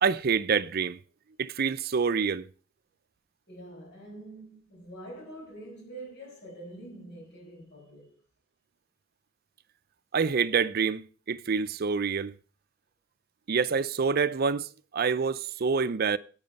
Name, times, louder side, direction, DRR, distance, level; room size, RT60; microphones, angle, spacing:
voice 1, 0.0-1.0 1.4-2.5 10.1-12.3 13.5-16.2, right 5 dB, 50° right, 0.5 m, -27 dB
voice 2, 3.5-8.2, right 1 dB, 60° left, 5.8 m, -45 dB
11.0 x 8.8 x 5.2 m
head